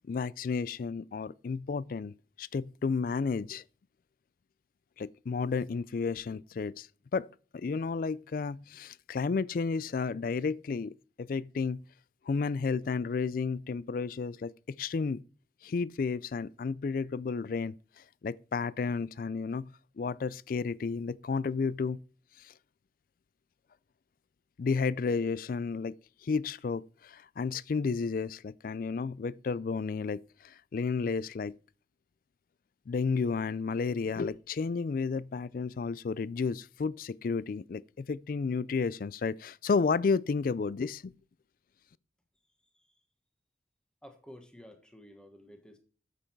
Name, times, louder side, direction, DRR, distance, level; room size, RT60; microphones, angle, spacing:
voice 1, 0.1-3.6 5.0-6.9 7.1-7.3 7.5-11.8 12.3-15.2 15.6-19.7 20.0-22.0 22.4-22.5 24.6-25.9 26.2-31.6 32.9-41.1, left 4 dB, 45° left, 0.3 m, -32 dB
voice 2, 44.0-45.8, equal, 5° left, 1.3 m, -52 dB
8.4 x 7.8 x 4.6 m
head